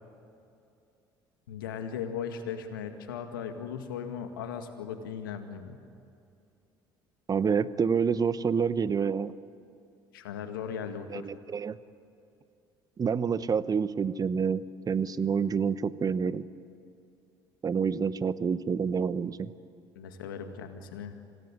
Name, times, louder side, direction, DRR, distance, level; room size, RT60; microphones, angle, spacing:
voice 1, 1.5-5.8 10.1-11.3 20.0-21.2, left 7 dB, 85° left, 7 dB, 2.0 m, -37 dB
voice 2, 7.3-9.3 11.1-11.8 13.0-16.4 17.6-19.5, right 6 dB, 35° right, 15 dB, 1.0 m, -28 dB
26.0 x 18.0 x 9.9 m, 2.6 s
hypercardioid pair, 60°, 11 cm